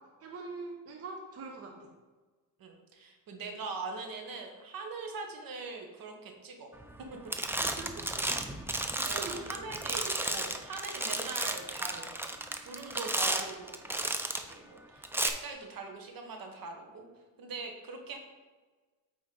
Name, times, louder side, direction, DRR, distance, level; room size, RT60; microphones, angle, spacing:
voice 1, 0.2-1.9 7.6-8.1 9.1-9.6, right 3 dB, 40° right, 1 dB, 0.9 m, -43 dB
voice 2, 2.6-6.7 8.7-12.3 12.6-14.1 14.3-17.1 17.4-18.2, right 4 dB, 70° right, 3 dB, 1.3 m, -42 dB
sound 1, 6.8-7.0 7.3-14.5 15.0-15.3, right 1 dB, 5° right, 0.5 m, -33 dB
8.7 x 4.1 x 3.9 m, 1.3 s
cardioid pair, 110°, 36 cm